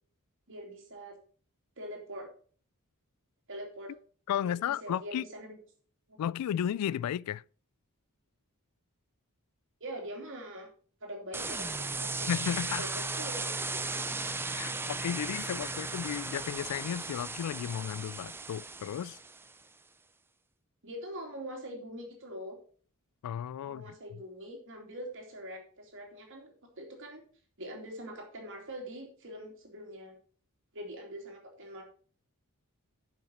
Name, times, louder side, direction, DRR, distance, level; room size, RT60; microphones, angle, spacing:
voice 1, 0.5-1.2 1.8-2.3 3.5-3.9 4.4-4.5 4.8-5.6 6.1-6.2 9.8-10.7 11.0-14.0 20.8-22.6 23.6-27.2 27.6-30.1 30.7-31.8, equal, 60° right, 2.8 m, -43 dB
voice 2, 4.3-5.3 6.2-7.4 12.3-12.9 14.5-19.2 23.2-24.2, left 9 dB, 90° left, 0.3 m, -34 dB
sound 1, 11.3-19.5, right 3 dB, 10° right, 0.5 m, -36 dB
10.5 x 5.8 x 4.4 m
head